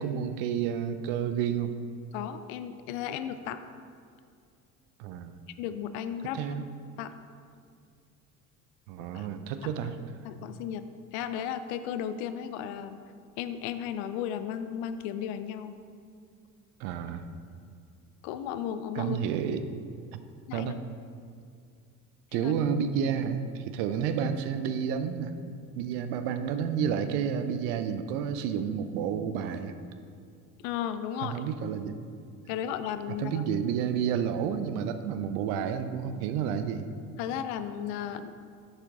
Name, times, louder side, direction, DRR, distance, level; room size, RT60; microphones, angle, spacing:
voice 1, 0.0-1.8 5.0-5.3 6.3-6.6 8.9-10.0 16.8-17.3 18.9-19.7 20.1-20.2 20.5-20.8 22.3-25.3 25.8-29.7 31.2-32.0 33.2-36.9, right 8 dB, 55° right, 10 dB, 0.6 m, -30 dB
voice 2, 2.1-3.6 5.6-6.6 7.0-7.1 9.1-9.3 9.6-9.7 10.2-10.9 11.1-13.0 13.4-15.8 18.2-19.2 20.5-20.7 22.3-22.5 30.6-31.4 32.5-33.4 37.2-38.3, left 9 dB, 50° left, 11 dB, 0.5 m, -34 dB
11.0 x 4.5 x 3.6 m, 2.3 s
figure-of-eight pair, 60°, 45 cm